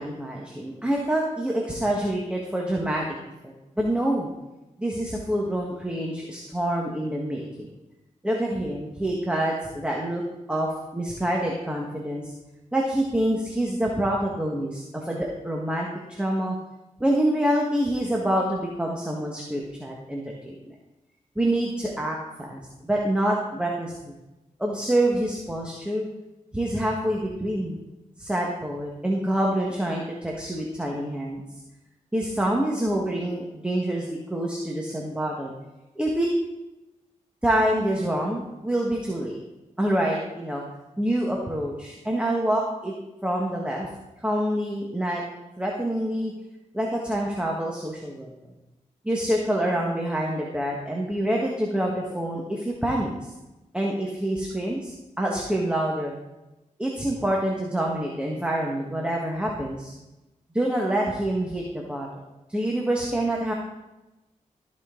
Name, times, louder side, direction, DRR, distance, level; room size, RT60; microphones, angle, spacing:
voice 1, 0.0-3.1 3.4-4.3 4.8-7.7 8.2-10.2 10.5-12.3 12.7-16.6 17.0-20.7 21.3-24.1 24.6-26.1 26.5-27.8 28.2-31.4 32.1-35.5 35.9-36.4 37.4-39.4 39.8-40.6 41.0-42.9 43.2-43.9 44.2-45.2 45.6-46.3 46.7-48.3 49.0-53.3 53.7-56.1 56.8-59.9 60.5-62.1 62.5-63.5, right 1 dB, 5° right, -2 dB, 1.5 m, -26 dB
14.0 x 5.4 x 3.9 m, 1.0 s
cardioid pair, 60°, 14 cm